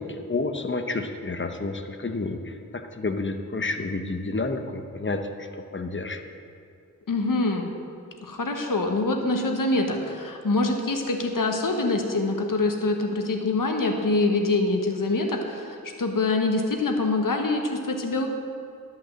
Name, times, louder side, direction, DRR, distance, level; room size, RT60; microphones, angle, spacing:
voice 1, 0.0-6.2, left 3 dB, 35° left, 6 dB, 0.9 m, -30 dB
voice 2, 7.1-7.7 8.2-18.3, left 2 dB, 80° left, 4 dB, 1.2 m, -25 dB
11.5 x 5.6 x 7.6 m, 2.4 s
wide cardioid pair, 50°, 32 cm